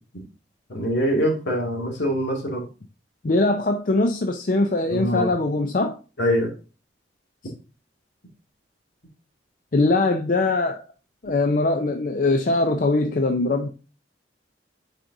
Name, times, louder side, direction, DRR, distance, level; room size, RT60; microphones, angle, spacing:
voice 1, 0.7-2.6 4.9-5.3 6.2-6.5, equal, 80° left, 2.1 m, -24 dB
voice 2, 3.2-6.0 9.7-10.8 11.2-13.7, left 2 dB, 45° left, 0.5 m, -21 dB
8.8 x 5.1 x 2.6 m
head